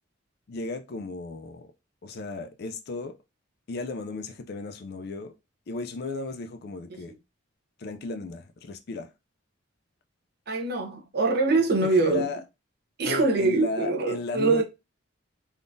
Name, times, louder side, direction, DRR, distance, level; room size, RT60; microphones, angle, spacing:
voice 1, 0.5-1.7 2.0-3.2 3.7-5.3 5.7-7.1 7.8-9.1 11.6-12.4 13.0-14.6, left 3 dB, 50° left, 0.4 m, -35 dB
voice 2, 10.5-12.3 13.0-14.6, right 3 dB, 50° right, 0.7 m, -24 dB
3.6 x 2.4 x 2.5 m
head